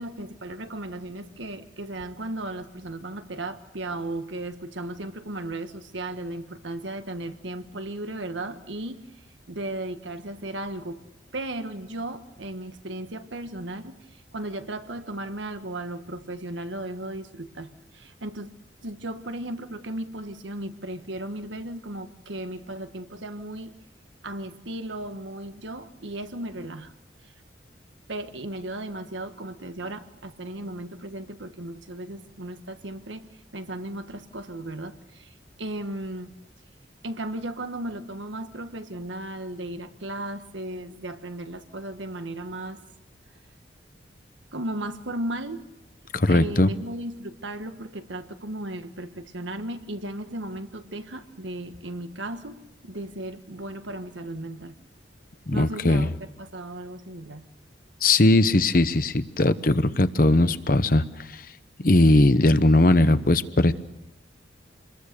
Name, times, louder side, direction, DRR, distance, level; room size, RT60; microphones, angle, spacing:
voice 1, 0.0-11.0 11.3-18.5 18.8-23.7 24.2-26.9 27.2-27.3 28.1-36.3 37.0-42.8 44.5-45.7 46.3-54.8 55.5-57.5, right 1 dB, 80° right, 8 dB, 1.5 m, -35 dB
voice 2, 46.1-46.7 55.5-56.1 58.0-61.4 61.8-63.7, left 2 dB, 50° left, 12 dB, 0.9 m, -19 dB
27.0 x 21.5 x 6.8 m, 0.93 s
head